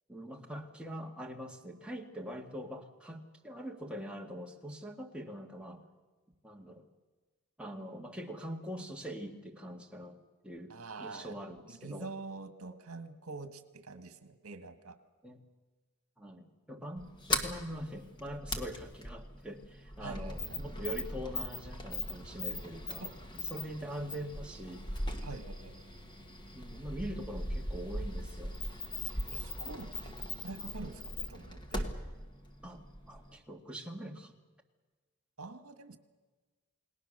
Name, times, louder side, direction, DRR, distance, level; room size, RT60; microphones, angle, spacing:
voice 1, 0.1-5.8 6.4-6.9 7.6-10.2 10.4-12.1 15.2-15.4 16.2-23.1 23.3-24.9 26.5-28.6 32.6-34.4, equal, 5° right, 1 dB, 1.8 m, -43 dB
voice 2, 10.7-11.3 11.7-15.0 20.0-20.6 23.0-23.2 25.2-25.7 29.3-31.9 35.4-36.0, right 3 dB, 75° right, 9 dB, 1.7 m, -46 dB
Sliding door, 17.0-33.3, left 1 dB, 20° left, 1.7 m, -39 dB
29.0 x 19.5 x 6.7 m, 1.3 s
head